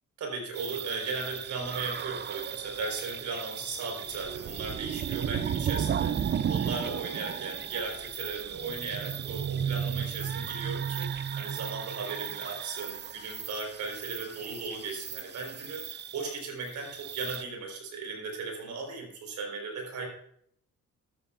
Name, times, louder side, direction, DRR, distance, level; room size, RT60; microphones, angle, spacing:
voice 1, 0.2-20.1, right 4 dB, 70° right, 2 dB, 4.3 m, -37 dB
sound 1, 0.6-17.4, right 8 dB, 35° right, 0.5 m, -34 dB
13.0 x 12.5 x 2.5 m, 0.70 s
cardioid pair, 90°, 30 cm